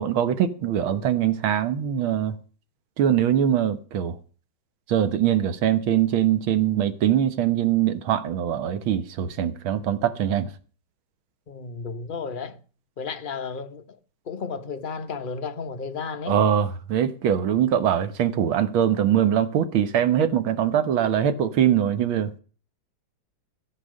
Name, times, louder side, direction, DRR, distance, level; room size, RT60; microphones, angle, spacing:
voice 1, 0.0-2.3 3.0-4.2 4.9-10.5 16.3-22.3, right 10 dB, 80° right, 2.0 m, -22 dB
voice 2, 11.5-12.6 13.0-14.0 14.3-16.4, left 5 dB, 35° left, 0.9 m, -33 dB
15.0 x 7.9 x 6.5 m
omnidirectional pair, 2.2 m